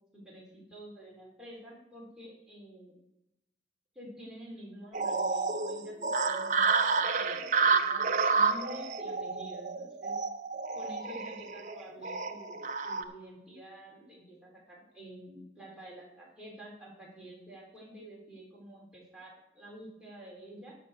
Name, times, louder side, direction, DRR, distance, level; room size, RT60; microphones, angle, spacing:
voice 1, 0.1-3.0 3.9-10.2 10.7-20.7, right 1 dB, 5° right, -6 dB, 4.0 m, -49 dB
sound 1, 4.9-13.0, right 4 dB, 45° right, 0.7 m, -30 dB
12.0 x 5.6 x 6.4 m, 0.86 s
head